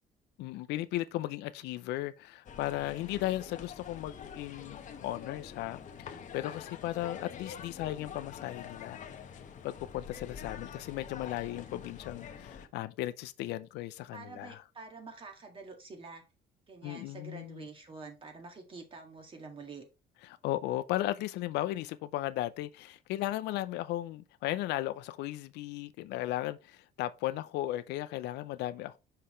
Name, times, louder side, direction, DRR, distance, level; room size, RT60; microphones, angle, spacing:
voice 1, 0.4-9.0 9.6-14.6 16.8-17.7 20.4-29.0, left 15 dB, 85° left, 0.5 m, -36 dB
sound 1, 2.5-12.7, left 7 dB, 50° left, 1.0 m, -46 dB
voice 2, 14.1-16.2 16.7-19.9, right 4 dB, 30° right, 2.0 m, -47 dB
5.8 x 5.6 x 3.1 m
cardioid pair, 110°, 17 cm